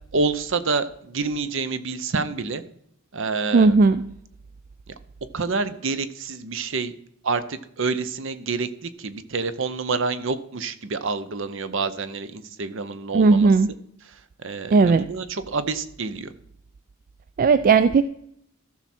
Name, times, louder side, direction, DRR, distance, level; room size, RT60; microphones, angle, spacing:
voice 1, 0.1-2.6 3.1-3.8 5.3-6.9 7.2-13.5 14.1-16.3, right 4 dB, 60° right, 13 dB, 0.7 m, -28 dB
voice 2, 3.5-4.1 13.1-13.7 14.7-15.1 17.4-18.0, right 4 dB, 40° right, 13 dB, 0.3 m, -16 dB
14.0 x 6.1 x 4.3 m, 0.73 s
head